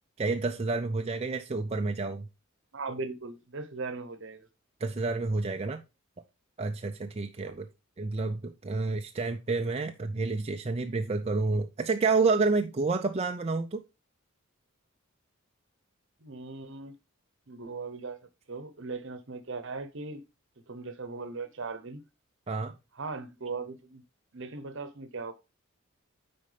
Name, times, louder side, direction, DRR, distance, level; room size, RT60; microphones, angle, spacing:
voice 1, 0.2-2.3 4.8-5.8 6.6-7.7 8.0-13.8 22.5-22.7, right 3 dB, 30° right, 0.4 m, -29 dB
voice 2, 2.7-4.5 7.4-7.6 16.2-16.9 17.5-18.2 18.5-20.2 20.7-22.0 23.0-24.0 24.3-25.3, right 4 dB, 60° right, 0.9 m, -38 dB
9.3 x 4.3 x 3.3 m
head